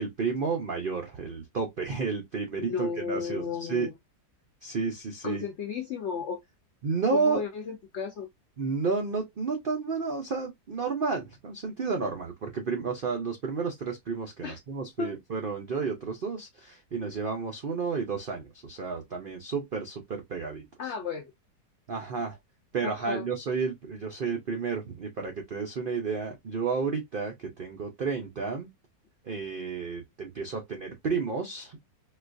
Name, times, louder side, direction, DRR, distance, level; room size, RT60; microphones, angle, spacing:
voice 1, 0.0-3.9 4.6-5.4 6.8-7.4 8.6-20.9 21.9-22.4 22.7-28.7 29.2-31.8, right 5 dB, 75° right, 0.5 m, -31 dB
voice 2, 2.6-3.9 5.2-6.4 7.2-8.3 14.4-14.6 15.0-15.1 20.8-21.3 22.8-23.2, left 5 dB, 85° left, 0.6 m, -34 dB
4.1 x 2.3 x 2.5 m
omnidirectional pair, 1.9 m